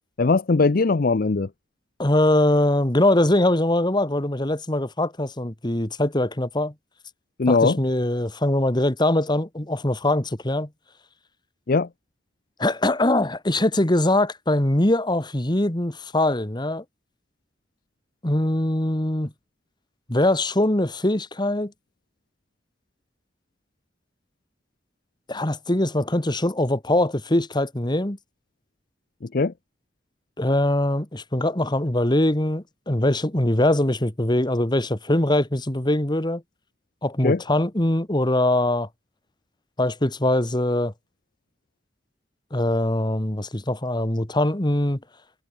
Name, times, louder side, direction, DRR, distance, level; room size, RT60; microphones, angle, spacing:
voice 1, 0.2-1.5 7.4-7.8 11.7-11.9 29.3-29.5 37.2-37.4, left 3 dB, 55° left, 0.6 m, -20 dB
voice 2, 2.0-6.7 7.5-10.7 12.6-16.8 18.2-19.3 20.1-21.7 25.3-28.2 30.4-36.4 37.0-38.9 39.8-40.9 42.5-45.0, left 1 dB, 25° left, 1.8 m, -22 dB
head